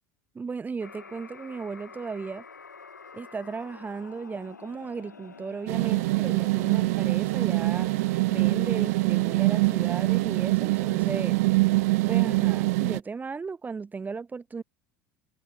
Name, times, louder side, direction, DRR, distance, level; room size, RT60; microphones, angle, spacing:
voice 1, 0.3-2.4 3.1-7.9 8.3-11.4 12.1-14.6, right 5 dB, 20° right, 0.7 m, -35 dB
sound 1, 0.8-12.8, left 5 dB, 85° left, 3.6 m, -49 dB
sound 2, 5.7-13.0, right 22 dB, 60° right, 0.5 m, -24 dB
figure-of-eight pair, 70°, 9 cm